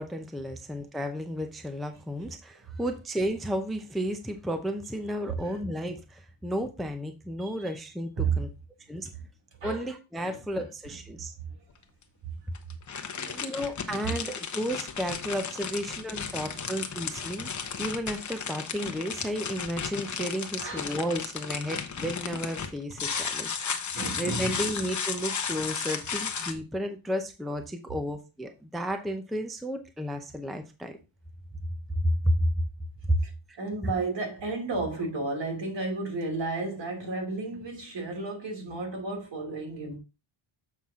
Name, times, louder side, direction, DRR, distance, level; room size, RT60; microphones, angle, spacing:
voice 1, 0.0-8.5 8.9-9.1 9.6-11.3 13.4-17.5 17.8-23.8 24.2-31.0 32.0-32.6 33.1-33.2 33.5-33.6, equal, ahead, 0.6 m, -32 dB
voice 2, 10.2-11.0 11.5-11.6 12.2-12.3 12.7-12.8 13.1-13.5 16.1-16.8 20.6-20.8 23.9-24.6 33.2-33.3 33.6-40.0, right 3 dB, 60° right, 2.9 m, -33 dB
sound 1, 11.7-11.8 12.5-26.5, left 6 dB, 35° left, 1.0 m, -34 dB
7.2 x 6.0 x 3.7 m
wide cardioid pair, 165°, 50 cm